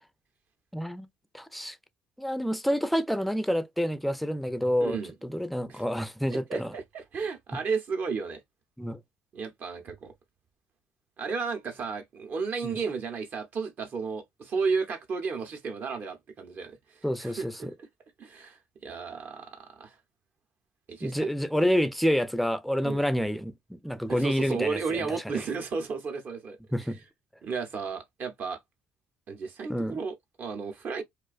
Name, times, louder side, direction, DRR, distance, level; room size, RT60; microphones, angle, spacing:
voice 1, 0.7-1.1 1.3-1.8 2.2-6.7 8.8-9.0 12.6-12.8 17.0-17.7 21.0-25.2 26.7-27.0 29.7-30.0, equal, ahead, 0.4 m, -28 dB
voice 2, 4.8-5.1 5.7-5.8 6.3-8.4 9.3-10.1 11.2-17.9 18.2-19.9 20.9-21.3 22.8-23.0 24.1-26.6 27.4-28.6 29.3-31.0, right 5 dB, 50° right, 0.7 m, -33 dB
2.4 x 2.2 x 2.3 m
supercardioid pair, 85°, 4 cm